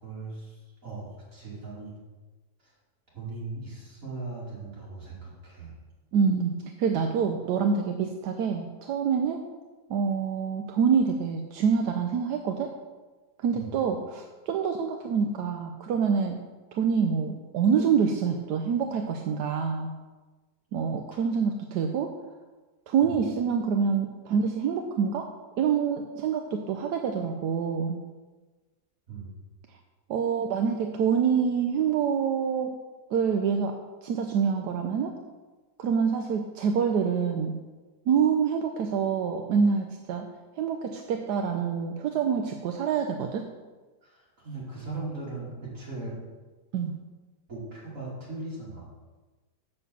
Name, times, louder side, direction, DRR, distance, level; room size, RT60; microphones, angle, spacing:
voice 1, 0.0-1.9 2.6-2.7 3.1-5.7 13.5-13.7 21.1-21.2 23.0-23.2 29.1-29.3 44.0-46.2 47.5-48.9, right 3 dB, 50° right, -6 dB, 3.2 m, -39 dB
voice 2, 6.1-9.4 9.9-12.7 13.4-16.4 16.7-19.9 20.7-22.1 22.9-25.3 25.6-28.0 30.1-32.7 33.1-35.2 35.8-37.6 38.1-40.3 40.6-43.5 46.7-46.9, right 6 dB, 80° right, 4 dB, 1.3 m, -26 dB
6.8 x 6.5 x 7.0 m, 1.3 s
omnidirectional pair, 1.7 m